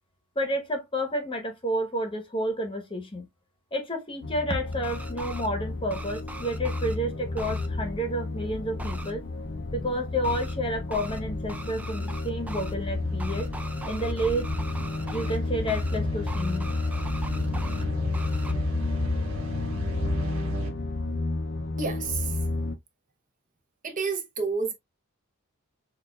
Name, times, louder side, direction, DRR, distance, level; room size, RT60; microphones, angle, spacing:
voice 1, 0.3-3.3 3.7-9.2 9.7-13.5 13.8-14.5 15.1-16.7, equal, 25° left, 1.0 m, -30 dB
sound 1, 4.2-22.8, left 2 dB, 55° left, 0.5 m, -32 dB
sound 2, 4.7-5.5 5.9-6.9 7.3-7.7 8.8-9.1 10.2-10.5 10.9-11.2 11.5-12.7 13.2-15.4 15.7-16.0 16.2-17.8 18.1-18.5, right 2 dB, 5° right, 0.4 m, -40 dB
sound 3, 11.3-20.7, left 1 dB, 65° right, 1.4 m, -35 dB
voice 2, 21.8-22.4 23.8-24.7, right 4 dB, 35° right, 0.8 m, -30 dB
6.5 x 2.5 x 2.3 m
head